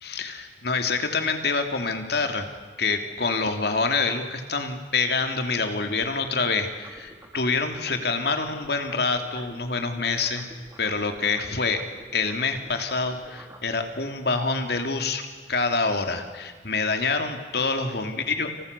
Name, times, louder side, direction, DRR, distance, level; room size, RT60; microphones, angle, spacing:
voice 1, 0.0-2.5 2.8-10.4 10.8-11.8 12.1-15.2 15.5-18.6, left 4 dB, 60° left, 6 dB, 3.0 m, -26 dB
sound 1, 6.0-9.7 9.9-13.7, right 1 dB, 15° right, 3.8 m, -48 dB
30.0 x 29.0 x 6.9 m, 1.5 s
head